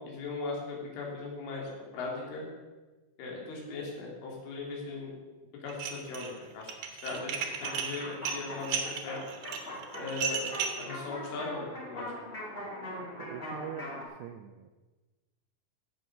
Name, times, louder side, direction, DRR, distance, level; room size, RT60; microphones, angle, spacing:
voice 1, 0.0-2.4 3.2-5.1 5.6-6.7 7.0-7.3 7.6-9.2 10.0-10.5 10.8-12.1, left 3 dB, 90° left, -2 dB, 5.6 m, -38 dB
Dishes pots and pans, 5.7-6.3 6.6-10.9, right 6 dB, 70° right, 3.2 m, -34 dB
sound 1, 7.1-14.0, equal, 70° left, 0.5 m, -42 dB
voice 2, 13.2-14.7, right 10 dB, 90° right, 7 dB, 2.3 m, -43 dB
16.0 x 7.8 x 6.2 m, 1.2 s
omnidirectional pair, 5.4 m